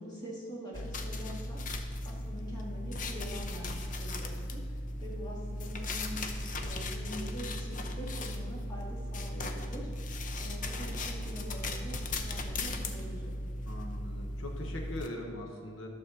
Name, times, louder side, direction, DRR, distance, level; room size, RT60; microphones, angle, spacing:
voice 1, 0.0-6.2 6.6-13.3, equal, 20° left, -5 dB, 2.0 m, -44 dB
sound 1, 0.7-15.1, left 1 dB, 40° left, 0.6 m, -37 dB
voice 2, 13.7-15.9, left 1 dB, 85° left, 2 dB, 1.1 m, -41 dB
12.0 x 4.2 x 6.4 m, 2.1 s
head